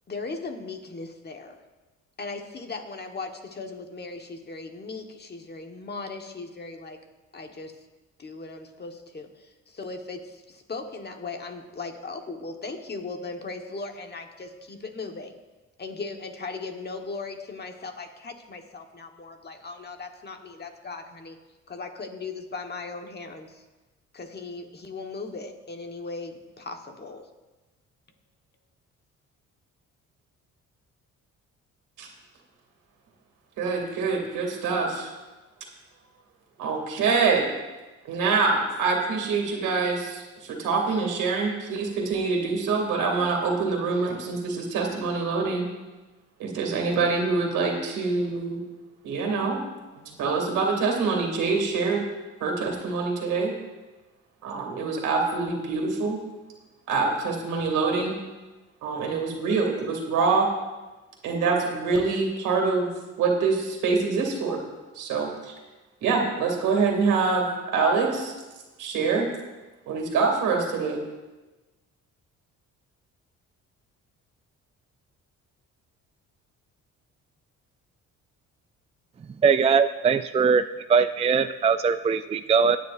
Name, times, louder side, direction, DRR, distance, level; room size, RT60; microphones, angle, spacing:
voice 1, 0.1-1.6 2.2-7.0 7.3-7.9 8.2-15.4 15.8-21.4 21.7-23.6 24.1-27.3, left 3 dB, 35° left, 4 dB, 1.3 m, -38 dB
voice 2, 33.6-35.1 36.6-37.4 38.0-45.7 46.4-48.6 49.0-49.6 50.0-52.0 52.4-53.5 54.4-56.2 56.9-58.1 58.8-60.5 61.2-62.9 63.2-64.6 64.9-65.5 66.0-68.3 68.8-69.3 69.9-71.0, right 4 dB, 90° right, 1 dB, 2.5 m, -25 dB
voice 3, 79.4-80.6 80.9-82.8, right 6 dB, 20° right, 10 dB, 0.3 m, -21 dB
17.5 x 9.3 x 2.6 m, 1.2 s
cardioid pair, 90°, 30 cm